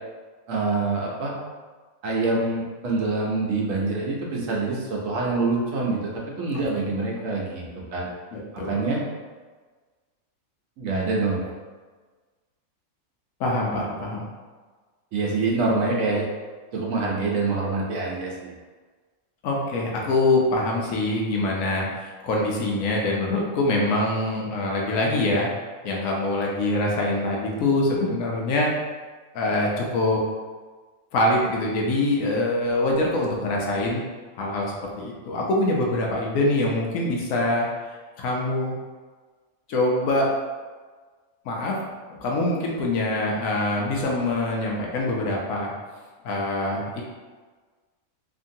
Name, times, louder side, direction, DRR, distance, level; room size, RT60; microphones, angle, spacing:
voice 1, 0.5-1.3 2.0-7.6 7.9-8.1 8.5-9.0 10.8-11.5 15.1-16.2 16.7-18.5, right 3 dB, 70° right, -3 dB, 1.0 m, -25 dB
voice 2, 8.3-8.9 13.4-14.3 19.4-25.5 25.8-28.7 29.3-30.2 31.1-34.0 34.4-38.8 39.7-40.3 41.5-41.8 42.2-45.7 46.2-47.0, left 2 dB, 75° left, -2 dB, 1.0 m, -24 dB
2.8 x 2.6 x 2.6 m, 1.4 s
omnidirectional pair, 1.5 m